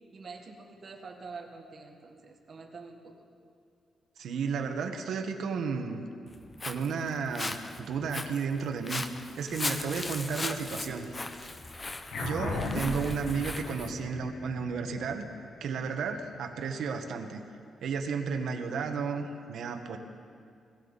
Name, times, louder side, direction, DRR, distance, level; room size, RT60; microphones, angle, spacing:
voice 1, 0.1-3.1 12.4-12.8, right 4 dB, 45° right, 2 dB, 1.8 m, -45 dB
voice 2, 4.2-6.0 6.6-9.0 9.4-11.1 12.2-15.2 15.6-17.4 17.8-20.0, right 5 dB, 75° right, 5 dB, 1.3 m, -33 dB
Walk footsteps, 6.3-13.9, left 2 dB, 25° left, 0.7 m, -38 dB
sound 1, 12.1-16.9, left 3 dB, 75° left, 1.6 m, -37 dB
20.5 x 16.0 x 4.1 m, 2.4 s
cardioid pair, 130°, 0 cm